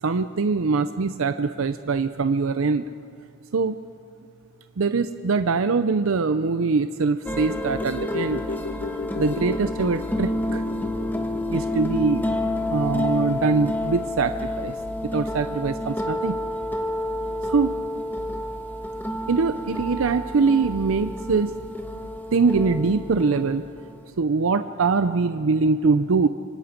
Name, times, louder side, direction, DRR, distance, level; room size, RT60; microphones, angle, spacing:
voice 1, 0.0-2.9 3.5-3.8 4.8-8.4 9.2-10.6 11.5-12.3 12.7-14.8 15.0-16.4 17.5-17.7 19.3-21.5 22.3-23.7 24.2-26.3, right 4 dB, 80° right, 11 dB, 0.6 m, -23 dB
sound 1, 7.3-24.1, left 1 dB, 10° left, 1.2 m, -29 dB
sound 2, 7.8-16.2 16.6-16.7, left 4 dB, 65° left, 1.0 m, -37 dB
25.0 x 24.0 x 5.2 m, 2.3 s
head